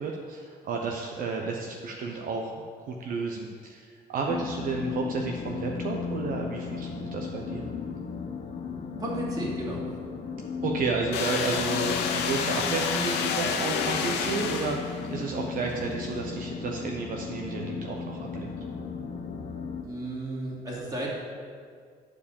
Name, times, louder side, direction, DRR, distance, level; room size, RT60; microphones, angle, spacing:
voice 1, 0.0-2.5 2.9-7.7 10.6-18.5, right 4 dB, 55° right, 0 dB, 0.8 m, -32 dB
sound 1, 4.3-19.8, left 6 dB, 35° left, 0.9 m, -35 dB
voice 2, 9.0-9.8 19.8-21.1, right 2 dB, 20° right, -5 dB, 2.6 m, -33 dB
sound 2, 11.1-15.2, left 6 dB, 85° left, 0.8 m, -29 dB
8.7 x 4.8 x 7.0 m, 2.1 s
cardioid pair, 110°, 17 cm